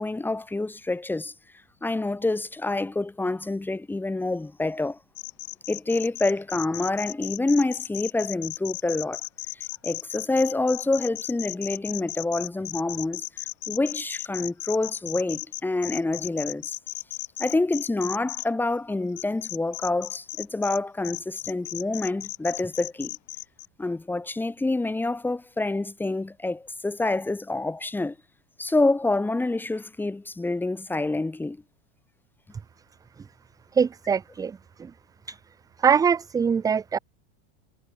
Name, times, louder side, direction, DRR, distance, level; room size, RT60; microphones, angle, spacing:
voice 1, 0.0-1.3 1.8-5.0 5.7-9.2 9.5-13.2 13.7-16.8 17.4-23.2 23.8-28.2 28.6-31.6, left 2 dB, 5° left, 2.7 m, -27 dB
sound 1, 5.2-18.5 19.2-20.8 21.0-23.7, left 23 dB, 45° left, 5.3 m, -35 dB
voice 2, 33.7-34.9 35.3-35.4 35.8-37.0, right 6 dB, 10° right, 0.7 m, -23 dB
supercardioid pair, 165°, 36 cm